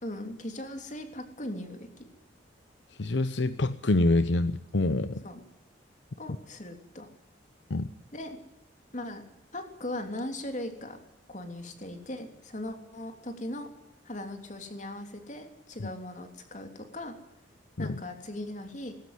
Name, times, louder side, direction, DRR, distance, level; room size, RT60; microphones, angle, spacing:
voice 1, 0.0-2.1 5.2-5.4 6.2-7.1 8.1-8.4 8.9-9.2 9.5-11.0 11.3-13.7 14.0-17.1 17.8-18.9, left 1 dB, 40° left, 6 dB, 3.3 m, -39 dB
voice 2, 3.0-5.2 7.7-7.9 17.8-18.0, left 2 dB, 70° left, 13 dB, 0.8 m, -26 dB
20.0 x 16.0 x 9.6 m, 0.87 s
head